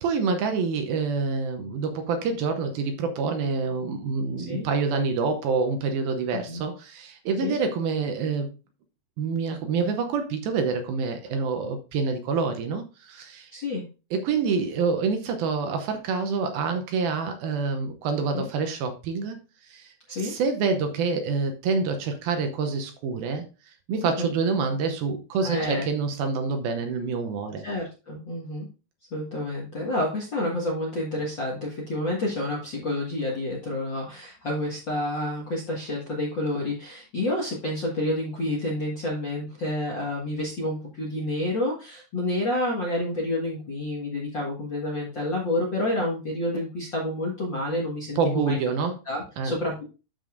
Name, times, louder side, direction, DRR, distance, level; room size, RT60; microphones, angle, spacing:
voice 1, 0.0-8.5 9.2-13.5 14.1-19.4 19.6-19.9 20.2-27.7 48.2-49.0 49.4-49.6, right 4 dB, 75° right, 6 dB, 2.4 m, -27 dB
voice 2, 13.5-13.9 18.3-18.5 20.1-20.3 24.0-24.3 25.4-25.9 27.6-28.7 29.1-48.6 49.0-49.9, left 1 dB, 50° left, -3 dB, 1.4 m, -29 dB
12.5 x 5.5 x 2.5 m, 0.32 s
omnidirectional pair, 4.8 m